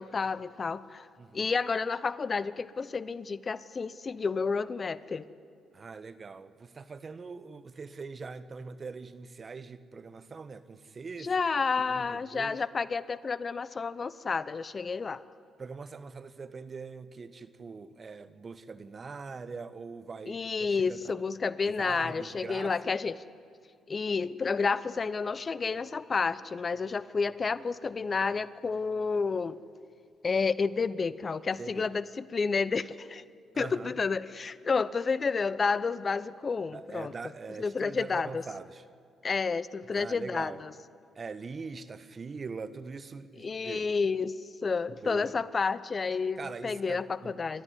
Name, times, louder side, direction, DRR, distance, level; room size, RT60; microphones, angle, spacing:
voice 1, 0.0-1.1 1.3-5.3 11.2-15.2 20.3-23.2 23.9-29.6 30.2-33.2 33.6-37.1 37.6-38.4 39.2-40.7 43.4-44.3 44.6-47.6, left 4 dB, 40° left, 17 dB, 0.7 m, -30 dB
voice 2, 1.2-1.5 5.7-11.3 11.9-12.6 15.6-21.1 21.6-22.9 31.5-31.9 33.5-34.0 36.7-38.8 39.9-40.6 41.1-43.9 45.0-45.4 46.4-47.3, right 4 dB, 40° right, 13 dB, 1.2 m, -42 dB
29.0 x 13.5 x 9.6 m, 2.3 s
supercardioid pair, 55°, 0 cm